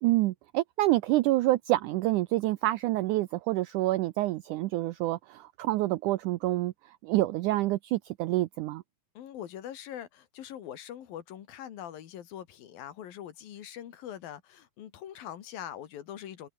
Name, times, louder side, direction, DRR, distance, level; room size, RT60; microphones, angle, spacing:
voice 1, 0.0-6.7 7.0-8.8, right 17 dB, 85° right, 1.8 m, -27 dB
voice 2, 9.2-16.5, left 10 dB, 75° left, 3.6 m, -43 dB
omnidirectional pair, 4.3 m